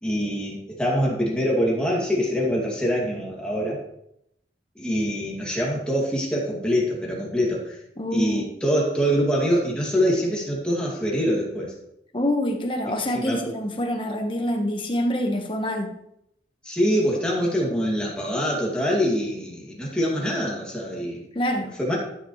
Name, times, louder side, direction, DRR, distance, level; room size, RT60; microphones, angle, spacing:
voice 1, 0.0-3.8 4.8-7.8 8.1-11.7 13.1-13.4 16.6-21.2 21.8-22.0, equal, 5° left, -4 dB, 2.2 m, -24 dB
voice 2, 8.0-8.4 12.1-16.0 21.3-21.8, left 1 dB, 30° left, 3 dB, 1.2 m, -26 dB
12.5 x 8.0 x 3.1 m, 0.79 s
head